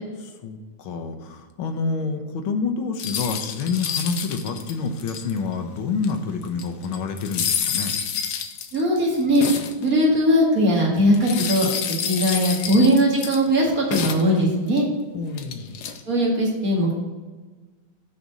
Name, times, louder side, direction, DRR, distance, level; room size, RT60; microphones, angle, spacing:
voice 1, 0.4-8.0 15.1-15.7, left 4 dB, 85° left, 6 dB, 1.8 m, -28 dB
sound 1, 3.0-5.5 6.0-6.1 6.4-9.9 11.1-13.5 13.9-14.8 15.4-16.0, left 7 dB, 65° left, 1.1 m, -28 dB
voice 2, 8.7-11.7 12.1-14.9 16.1-16.9, equal, 45° right, -3 dB, 2.3 m, -19 dB
6.7 x 5.6 x 6.1 m, 1.3 s
omnidirectional pair, 2.2 m